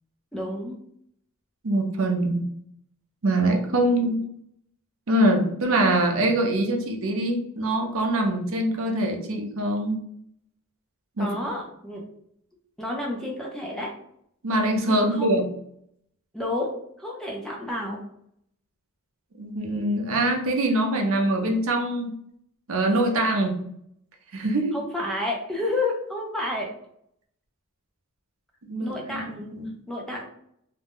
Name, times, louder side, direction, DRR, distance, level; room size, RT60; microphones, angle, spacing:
voice 1, 0.3-0.8 11.2-12.0 12.8-13.9 14.8-15.3 16.3-18.0 24.7-26.7 28.8-29.5 29.9-30.3, left 2 dB, ahead, -2 dB, 0.4 m, -30 dB
voice 2, 1.6-2.4 3.2-4.2 5.1-10.0 11.2-11.4 14.4-15.5 19.4-22.1 22.7-23.6 24.3-24.8 28.7-29.3 29.5-29.8, right 1 dB, 65° right, 2 dB, 0.5 m, -23 dB
2.5 x 2.1 x 3.4 m, 0.70 s
head